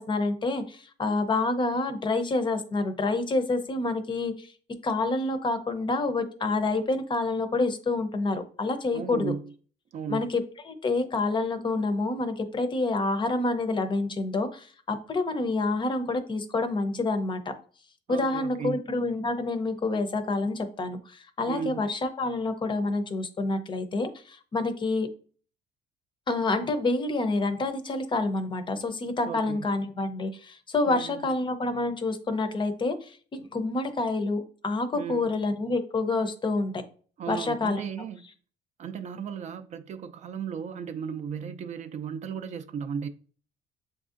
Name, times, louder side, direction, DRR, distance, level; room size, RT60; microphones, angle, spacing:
voice 1, 0.0-4.5 4.8-9.3 10.1-17.4 18.1-25.1 26.3-36.8 37.3-37.8, left 3 dB, 30° left, 0.6 m, -28 dB
voice 2, 8.9-9.5 9.9-10.3 18.1-18.8 21.5-21.9 29.2-29.7 30.9-31.2 35.0-35.4 37.2-38.2 38.8-43.1, right 7 dB, 45° right, 0.4 m, -35 dB
7.0 x 2.6 x 2.5 m
cardioid pair, 110°, 17 cm